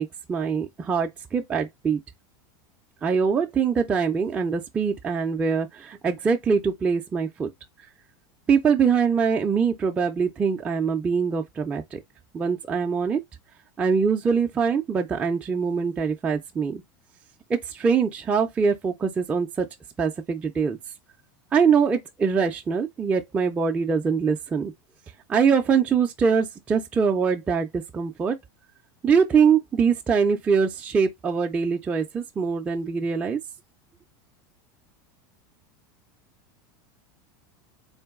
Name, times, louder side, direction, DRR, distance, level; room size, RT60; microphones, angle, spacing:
voice 1, 0.0-2.0 3.0-7.5 8.5-12.0 12.3-13.2 13.8-16.8 17.5-19.7 20.0-20.8 21.5-24.7 25.3-28.4 29.0-33.4, right 6 dB, 10° right, 0.3 m, -23 dB
3.8 x 2.5 x 3.5 m
supercardioid pair, 165°, 11 cm